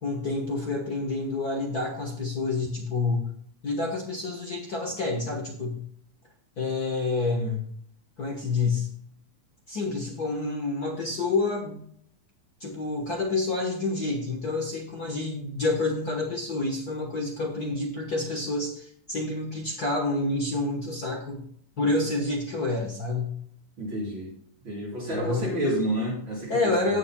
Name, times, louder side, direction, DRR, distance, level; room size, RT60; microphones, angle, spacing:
voice 1, 0.0-3.3 3.6-5.8 6.6-7.7 8.2-8.9 9.7-11.8 12.6-21.4 21.8-23.4 25.0-25.5 26.5-27.0, left 3 dB, 55° left, 1 dB, 1.0 m, -28 dB
voice 2, 23.8-24.3 24.6-27.0, right 1 dB, 35° right, -6 dB, 5.1 m, -30 dB
17.0 x 7.3 x 2.3 m, 0.64 s
omnidirectional pair, 3.7 m